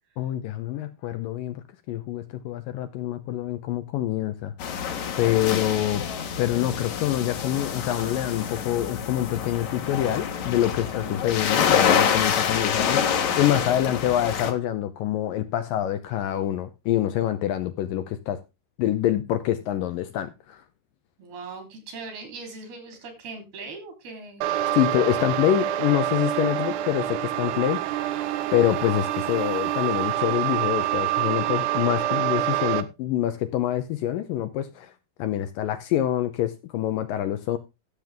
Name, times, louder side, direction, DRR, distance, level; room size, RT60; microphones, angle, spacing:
voice 1, 0.2-4.9 5.2-6.0 6.4-13.0 13.4-18.4 18.8-20.6 24.7-28.2 28.5-34.9 35.2-37.6, left 12 dB, 75° left, 2.2 m, -26 dB
sound 1, 4.6-14.5, left 8 dB, 55° left, 2.4 m, -26 dB
voice 2, 12.7-14.0 21.2-24.5, right 4 dB, 70° right, 5.3 m, -40 dB
sound 2, 24.4-32.8, right 12 dB, 90° right, 2.9 m, -26 dB
15.0 x 7.5 x 3.5 m
omnidirectional pair, 4.5 m